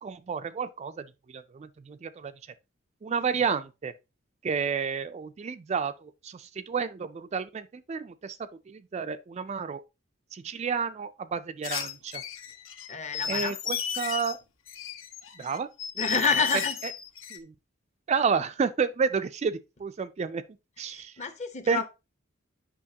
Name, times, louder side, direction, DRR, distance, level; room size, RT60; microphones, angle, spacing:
voice 1, 0.0-2.3 3.0-3.9 4.4-8.4 8.7-9.8 10.3-12.2 13.3-13.5 14.0-14.4 15.4-15.7 17.3-17.5 18.1-20.4 20.8-21.1 21.7-21.9, right 5 dB, 30° right, 0.3 m, -30 dB
sound 1, 11.6-14.3 14.7-17.4, left 7 dB, 65° left, 0.9 m, -34 dB
voice 2, 12.9-13.6 15.9-16.8 20.8-21.9, left 5 dB, 35° left, 0.9 m, -29 dB
8.5 x 5.7 x 2.8 m
head